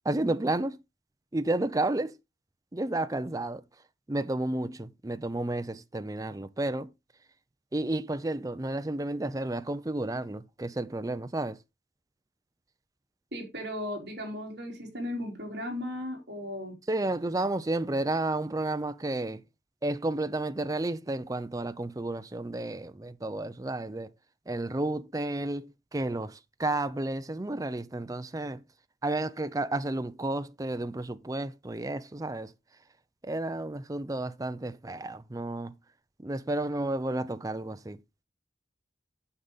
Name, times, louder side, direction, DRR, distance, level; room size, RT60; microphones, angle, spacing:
voice 1, 0.1-0.8 1.3-2.1 2.7-3.6 4.1-6.9 7.7-11.6 16.9-19.4 19.8-24.1 24.5-28.6 29.0-32.5 33.2-35.7 36.2-38.0, right 2 dB, 20° right, 0.5 m, -31 dB
voice 2, 13.3-16.8, left 1 dB, 60° right, 4.0 m, -36 dB
9.7 x 6.7 x 4.0 m
head